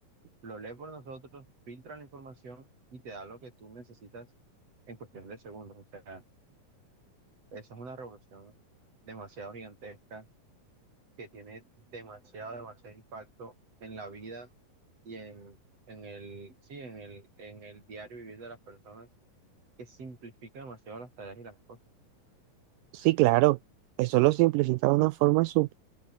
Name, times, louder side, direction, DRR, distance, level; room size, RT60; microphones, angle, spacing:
voice 1, 0.4-4.3 4.9-6.2 7.5-8.5 9.0-10.3 11.2-11.6 11.9-13.5 13.8-14.5 15.0-15.6 15.9-19.1 19.8-21.8, right 3 dB, 40° right, 6.5 m, -45 dB
voice 2, 22.9-23.6 24.0-25.7, right 20 dB, 80° right, 2.0 m, -23 dB
open air
omnidirectional pair, 4.2 m